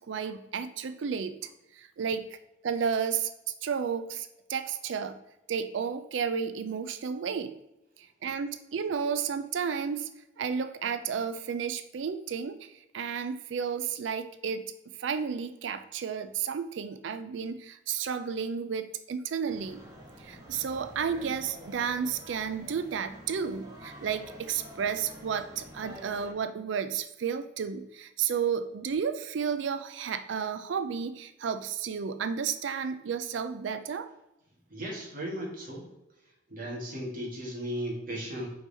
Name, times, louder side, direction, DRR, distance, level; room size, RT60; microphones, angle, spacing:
voice 1, 0.0-2.4 2.6-5.2 5.5-7.5 8.0-10.1 10.4-14.6 15.0-19.8 20.2-34.1, right 6 dB, 70° right, 10 dB, 0.4 m, -32 dB
sound 1, 19.5-26.3, equal, 20° right, 1.2 m, -48 dB
voice 2, 34.7-35.9 36.5-38.5, equal, 45° right, -4 dB, 2.2 m, -36 dB
5.3 x 4.7 x 4.2 m, 0.90 s
head